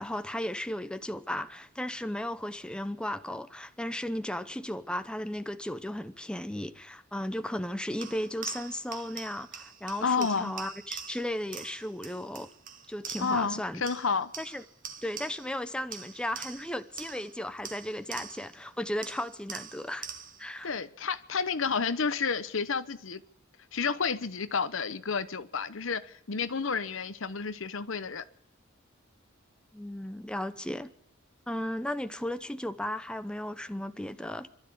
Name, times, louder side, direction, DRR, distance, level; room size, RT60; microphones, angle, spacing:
voice 1, 0.0-12.5 12.9-13.8 14.4-14.6 15.0-20.1 20.4-20.7 29.7-30.9 31.5-34.5, left 1 dB, 5° left, 0.8 m, -35 dB
sound 1, 8.0-13.6 13.9-15.6 15.9-18.6 19.0-20.5, right 7 dB, 40° right, 1.4 m, -44 dB
voice 2, 10.0-10.5 13.2-14.3 20.6-23.2 23.7-28.2, left 5 dB, 70° left, 0.9 m, -30 dB
26.0 x 12.5 x 8.5 m
head